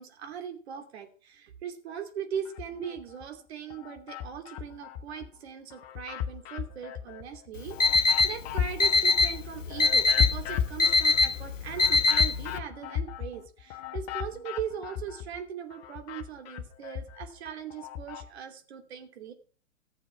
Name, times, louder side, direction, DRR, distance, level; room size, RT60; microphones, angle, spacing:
voice 1, 0.0-19.3, right 8 dB, 55° right, 5 dB, 2.8 m, -40 dB
sound 1, 2.4-3.3 3.7-5.3 5.7-15.4 15.7-18.3, left 9 dB, 35° left, 1.4 m, -35 dB
Alarm, 7.6-12.6, left 3 dB, 85° left, 1.2 m, -24 dB
15.0 x 7.2 x 5.8 m, 0.41 s
hypercardioid pair, 130°, 37 cm